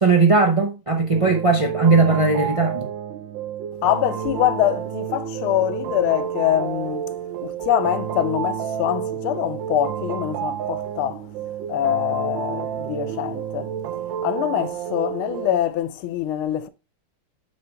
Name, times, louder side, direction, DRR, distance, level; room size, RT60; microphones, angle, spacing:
voice 1, 0.0-2.9, right 4 dB, 40° right, 0.4 m, -18 dB
sound 1, 1.1-15.6, right 9 dB, 70° right, 1.4 m, -30 dB
voice 2, 3.8-7.1 7.4-11.2 11.7-13.7 14.2-16.7, left 12 dB, 85° left, 1.6 m, -24 dB
9.6 x 4.7 x 3.4 m
omnidirectional pair, 2.3 m